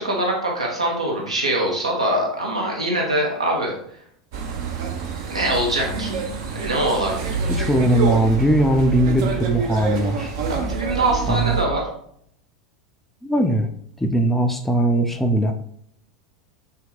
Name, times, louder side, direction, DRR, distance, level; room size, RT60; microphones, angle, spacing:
voice 1, 0.0-3.8 5.3-6.2 6.5-7.2 10.5-11.8, right 1 dB, 80° right, -2 dB, 1.0 m, -23 dB
sound 1, 4.3-11.6, right 5 dB, 55° right, 0.6 m, -27 dB
voice 2, 7.5-10.3 11.3-11.6 13.2-13.7 14.0-15.5, right 1 dB, 5° left, 4 dB, 0.4 m, -19 dB
2.8 x 2.2 x 3.7 m, 0.66 s
figure-of-eight pair, 80°, 3 cm